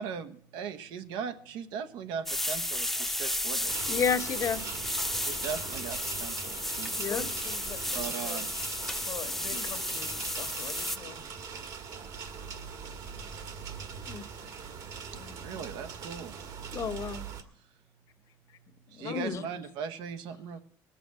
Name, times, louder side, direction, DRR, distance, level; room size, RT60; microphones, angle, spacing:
voice 1, 0.0-3.7 5.2-7.2 7.9-8.5 15.4-16.3 18.9-20.6, right 7 dB, 80° right, 1.1 m, -39 dB
sound 1, 2.3-11.0, left 1 dB, 5° left, 0.8 m, -33 dB
sound 2, 3.7-17.4, right 6 dB, 60° right, 1.6 m, -41 dB
voice 2, 3.9-4.6 7.0-7.2 9.5-9.6 14.1-14.3 16.7-17.3 19.1-19.4, left 6 dB, 45° left, 1.0 m, -30 dB
voice 3, 6.9-8.5 9.0-11.2 12.5-12.9 13.9-14.1 14.4-14.7 15.1-15.6 18.3-18.6 18.9-19.5, left 8 dB, 60° left, 1.5 m, -45 dB
19.5 x 7.0 x 6.1 m
cardioid pair, 115°, 7 cm